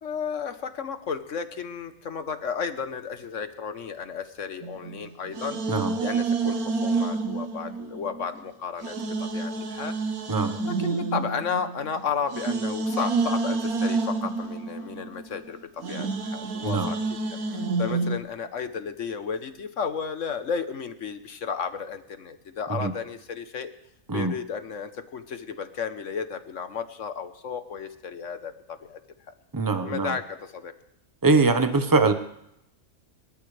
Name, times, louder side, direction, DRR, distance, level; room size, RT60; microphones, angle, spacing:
voice 1, 0.0-5.6 6.0-9.9 10.7-17.2 17.5-23.7 24.1-29.0 29.3-29.4 29.8-30.7, left 6 dB, 60° left, 9 dB, 1.4 m, -33 dB
sound 1, 4.6-8.4 8.8-18.2, right 3 dB, 85° right, 1.7 m, -29 dB
voice 2, 29.5-30.1 31.2-32.1, right 3 dB, 15° right, 7 dB, 1.0 m, -22 dB
26.0 x 13.0 x 3.4 m, 0.81 s
omnidirectional pair, 1.5 m